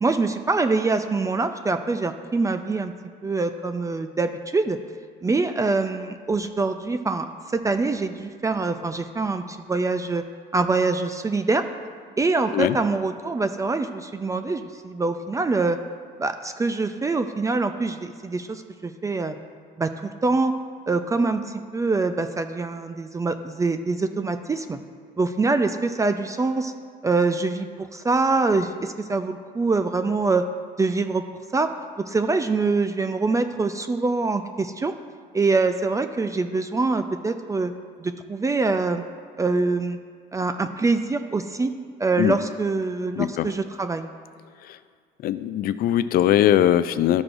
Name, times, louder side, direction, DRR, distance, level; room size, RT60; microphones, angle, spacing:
voice 1, 0.0-2.9 3.2-4.8 5.2-7.3 7.5-10.2 10.5-11.6 12.2-15.8 16.2-19.4 19.8-20.5 20.9-24.8 25.2-26.7 27.0-30.5 30.8-31.2 31.5-31.7 32.1-34.9 35.3-37.7 38.0-39.0 39.4-40.0 40.3-41.7 42.0-44.1, right 3 dB, 20° right, 9 dB, 0.4 m, -24 dB
voice 2, 43.2-43.5 44.7-44.8 45.2-47.2, left 12 dB, 60° left, 13 dB, 0.4 m, -21 dB
12.5 x 6.0 x 2.6 m, 2.1 s
cardioid pair, 110°, 17 cm